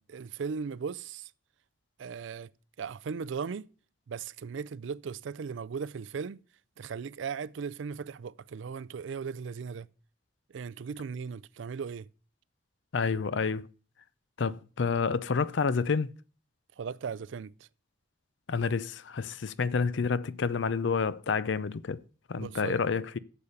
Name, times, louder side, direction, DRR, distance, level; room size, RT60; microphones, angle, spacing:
voice 1, 0.1-1.3 2.0-2.5 2.8-3.7 4.1-6.4 6.8-9.9 10.5-12.1 16.8-17.5 22.4-22.8, right 6 dB, 75° right, 0.4 m, -37 dB
voice 2, 12.9-13.7 14.4-16.1 18.5-22.0 22.3-23.2, left 5 dB, 70° left, 0.5 m, -29 dB
8.4 x 7.2 x 6.5 m
head